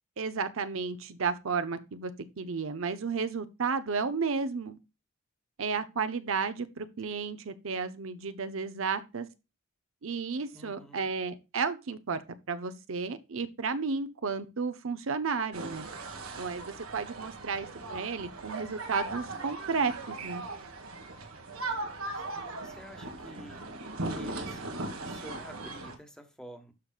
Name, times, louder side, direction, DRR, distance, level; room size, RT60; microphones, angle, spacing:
voice 1, 0.2-2.1 2.4-4.8 5.6-9.3 10.0-12.2 12.5-15.9 16.4-20.5, right 5 dB, 70° right, 0.7 m, -33 dB
voice 2, 10.5-11.1 22.1-23.6 24.1-26.7, equal, 5° left, 1.3 m, -50 dB
sound 1, 15.5-26.0, right 2 dB, 90° right, 1.7 m, -39 dB
12.5 x 5.2 x 2.4 m
head